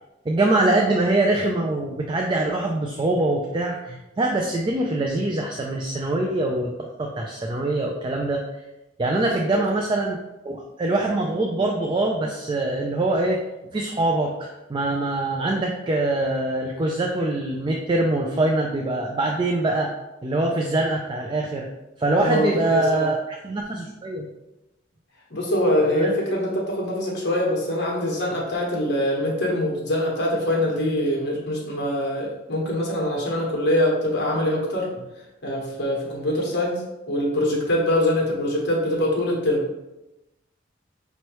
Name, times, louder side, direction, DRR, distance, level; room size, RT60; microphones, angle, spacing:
voice 1, 0.3-8.4 9.0-10.2 10.4-13.4 13.7-19.9 20.2-21.7 22.0-23.2 23.4-24.3 26.0-26.1, right 2 dB, 25° right, 0 dB, 0.3 m, -23 dB
voice 2, 22.2-23.1 25.3-35.0 35.4-39.6, left 1 dB, 60° left, -2 dB, 1.2 m, -24 dB
5.4 x 3.0 x 3.1 m, 0.98 s
head